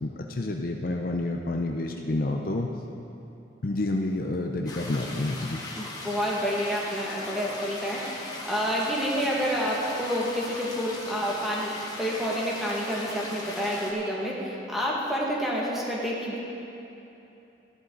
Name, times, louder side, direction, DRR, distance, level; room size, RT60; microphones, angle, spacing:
voice 1, 0.0-2.7 3.6-5.6, left 2 dB, 50° left, 2 dB, 0.7 m, -29 dB
sound 1, 4.7-13.9, left 2 dB, 20° left, 1.6 m, -39 dB
voice 2, 5.8-11.7 12.0-16.4, equal, ahead, -5 dB, 1.9 m, -29 dB
15.0 x 11.0 x 4.0 m, 2.9 s
head